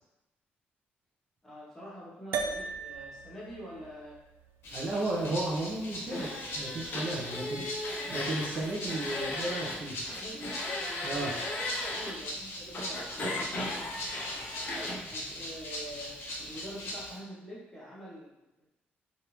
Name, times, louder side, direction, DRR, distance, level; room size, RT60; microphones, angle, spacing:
voice 1, 1.4-4.2 7.1-7.7 9.7-9.8 10.1-10.5 11.9-14.6 15.1-18.7, equal, 10° left, -6 dB, 0.9 m, -46 dB
sound 1, 2.3-6.9, right 5 dB, 75° right, 0.3 m, -40 dB
Rattle (instrument), 4.6-17.2, left 1 dB, 85° left, 0.9 m, -41 dB
voice 2, 4.7-7.7 8.1-10.0 11.0-11.4 14.8-15.1, right 2 dB, 45° right, -4 dB, 0.6 m, -34 dB
sound 2, 6.1-9.8 10.0-12.1 12.7-15.0, left 2 dB, 50° left, 0.6 m, -36 dB
3.3 x 2.5 x 2.9 m, 0.93 s
cardioid pair, 160°, 4 cm